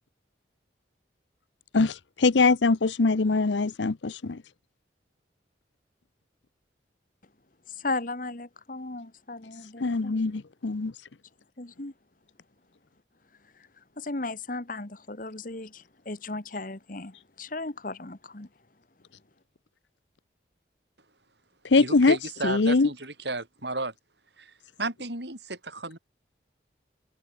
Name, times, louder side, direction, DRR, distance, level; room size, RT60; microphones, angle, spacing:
voice 1, 1.7-4.4 9.8-10.9 21.7-22.2 22.4-22.9, left 3 dB, 80° left, 0.7 m, -22 dB
voice 2, 7.8-10.1 11.6-11.9 14.0-18.5, left 2 dB, 45° left, 1.6 m, -36 dB
voice 3, 21.8-23.9 24.4-24.5 24.8-26.0, right 2 dB, 70° right, 7.5 m, -33 dB
head